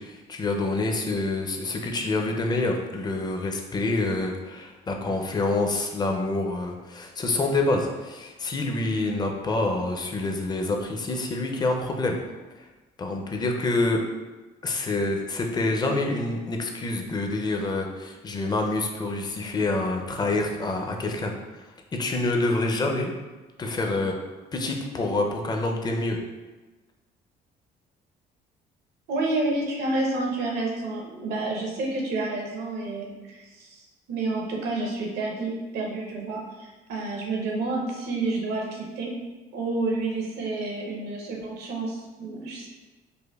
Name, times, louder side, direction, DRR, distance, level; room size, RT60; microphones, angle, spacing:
voice 1, 0.0-12.2 12.6-12.7 13.0-14.0 14.6-23.1 23.6-24.1 24.5-26.2, left 2 dB, 25° left, 2 dB, 0.5 m, -27 dB
voice 2, 29.1-39.2 39.5-42.7, right 2 dB, 75° right, -1 dB, 0.8 m, -29 dB
5.0 x 2.1 x 2.3 m, 1.2 s
cardioid pair, 110°, 17 cm